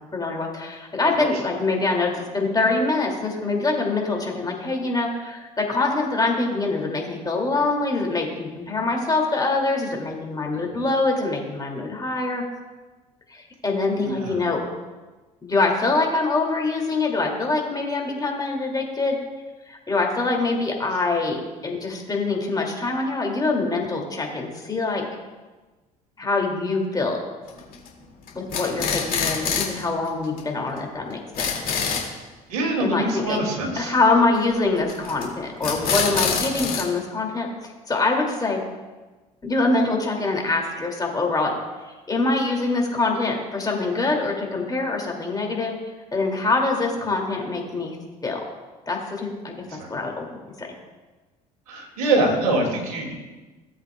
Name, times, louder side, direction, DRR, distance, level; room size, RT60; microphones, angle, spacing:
voice 1, 0.1-12.4 13.3-14.6 15.4-19.2 19.7-25.0 26.2-27.2 28.3-31.5 32.8-33.4 33.8-38.6 39.4-41.5 41.8-45.7 46.1-48.0 48.2-48.4 48.9-50.3 50.6-50.7, left 3 dB, 20° left, 0 dB, 2.4 m, -24 dB
voice 2, 14.0-14.4 32.5-33.9 49.8-49.9 51.7-53.1, right 2 dB, 75° right, 0 dB, 2.2 m, -24 dB
sound 1, 27.5-27.9 28.3-29.8 30.1-30.2 30.4-30.5 30.8-30.9 31.1-32.1 34.9-35.3 35.6-36.8, left 6 dB, 50° left, 2.3 m, -25 dB
17.0 x 7.9 x 2.3 m, 1.2 s
hypercardioid pair, 60°, 19 cm